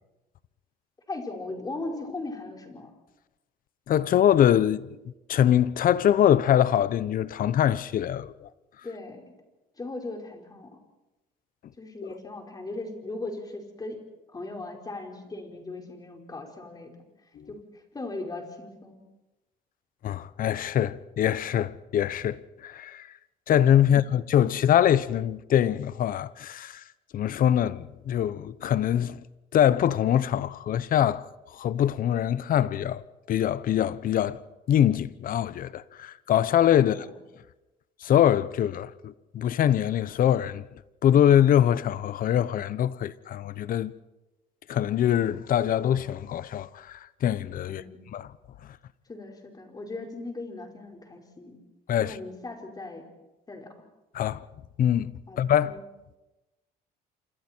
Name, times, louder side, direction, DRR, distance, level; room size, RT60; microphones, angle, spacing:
voice 1, 1.1-2.9 8.8-9.3 9.8-10.7 11.8-14.1 14.3-16.9 17.5-19.0 23.8-24.2 36.8-37.1 47.7-48.0 49.1-51.6 52.0-53.1 53.5-53.7 55.3-55.8, left 2 dB, 20° left, 5.2 m, -38 dB
voice 2, 3.9-4.9 5.3-8.5 17.4-17.5 20.0-23.1 23.5-26.8 27.1-29.2 29.5-31.2 31.5-33.0 33.3-34.4 34.7-37.0 38.0-40.6 41.0-43.9 44.7-47.8 48.1-48.3 51.9-52.2 54.1-54.4 54.8-55.7, left 10 dB, 55° left, 1.0 m, -23 dB
29.0 x 26.0 x 4.6 m
cardioid pair, 110°, 17 cm